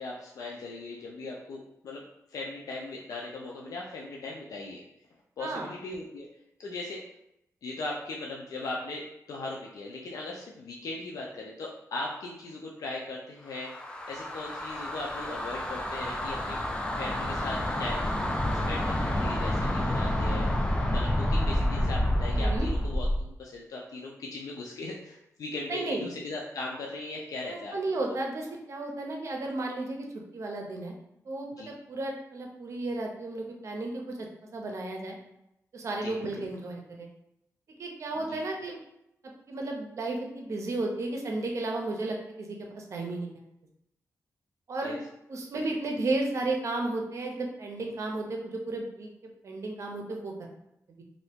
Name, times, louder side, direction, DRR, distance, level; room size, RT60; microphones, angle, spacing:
voice 1, 0.0-2.0 2.3-4.8 5.4-6.3 6.6-7.0 7.6-13.7 14.1-16.6 16.9-18.1 18.5-20.5 20.9-28.0 31.6-31.7 36.0-36.5 38.2-38.4 44.8-45.0 45.5-45.7, left 2 dB, 80° left, -2 dB, 0.4 m, -38 dB
sound 1, 13.5-23.3, left 1 dB, 15° left, 0.4 m, -29 dB
voice 2, 22.3-22.7 25.7-26.1 27.5-30.1 30.3-30.9 31.3-34.3 34.5-35.2 35.7-37.1 37.8-38.8 39.2-43.3 44.7-45.0 45.3-50.5, right 2 dB, 55° right, 1 dB, 0.6 m, -33 dB
2.7 x 2.6 x 3.4 m, 0.83 s
wide cardioid pair, 135°, 6 cm